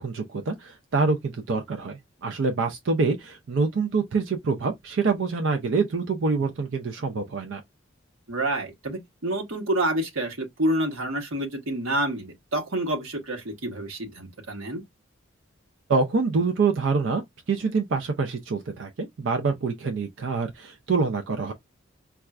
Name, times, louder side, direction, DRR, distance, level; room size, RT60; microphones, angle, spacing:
voice 1, 0.0-7.6 15.9-21.5, right 4 dB, 65° right, 0.4 m, -26 dB
voice 2, 8.3-14.8, right 1 dB, 80° right, 1.1 m, -28 dB
4.1 x 2.3 x 2.3 m
head